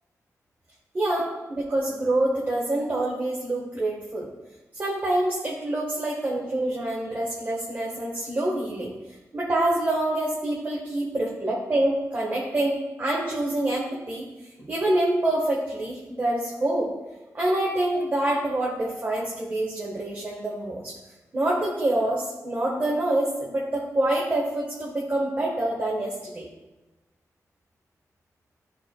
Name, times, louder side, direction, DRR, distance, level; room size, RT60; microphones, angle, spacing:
voice 1, 0.9-4.3 4.7-8.9 9.3-14.3 14.6-16.9 17.3-20.9 21.3-26.5, right 1 dB, 30° right, -4 dB, 1.2 m, -26 dB
12.5 x 4.5 x 2.2 m, 1.1 s
wide cardioid pair, 140°, 6 cm